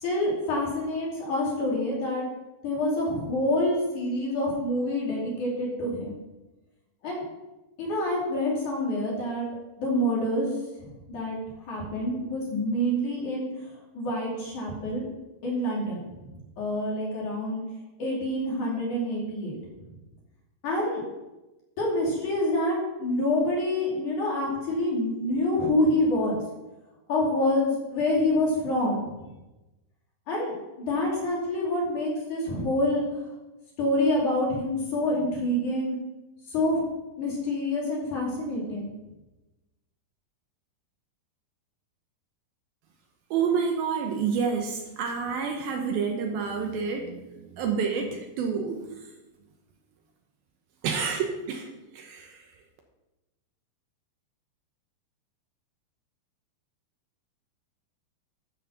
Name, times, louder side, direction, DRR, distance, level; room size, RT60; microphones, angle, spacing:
voice 1, 0.0-2.3 2.6-6.1 7.0-7.2 7.8-9.5 9.8-10.5 10.8-11.4 11.7-13.5 13.9-15.1 15.4-16.0 16.3-17.6 18.0-19.9 20.6-21.0 21.8-26.4 27.1-29.2 30.3-33.3 33.8-36.0 36.5-36.8 37.2-38.9, left 1 dB, 50° left, -3 dB, 4.0 m, -27 dB
voice 2, 43.3-49.1 50.8-52.5, right 6 dB, 70° right, 3 dB, 2.6 m, -29 dB
13.0 x 6.2 x 5.9 m, 1.0 s
omnidirectional pair, 4.8 m